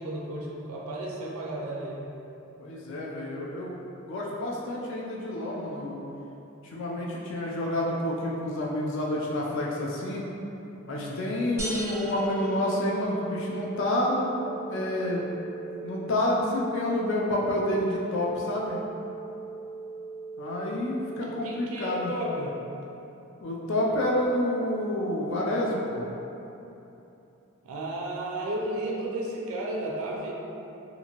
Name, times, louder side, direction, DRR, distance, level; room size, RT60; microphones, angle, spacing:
voice 1, 0.0-2.1 6.7-6.8 10.9-11.2 21.4-22.6 27.6-30.3, right 1 dB, 70° right, -2 dB, 0.4 m, -33 dB
voice 2, 2.6-6.0 6.6-10.2 10.9-14.3 14.7-15.2 15.8-18.8 20.4-22.1 23.4-26.0, left 1 dB, 55° left, -3 dB, 0.3 m, -29 dB
sound 1, 11.6-21.6, right 4 dB, 35° left, 1.0 m, -40 dB
sound 2, 11.6-13.4, right 1 dB, 10° right, 0.5 m, -38 dB
2.7 x 2.5 x 2.8 m, 3.0 s
head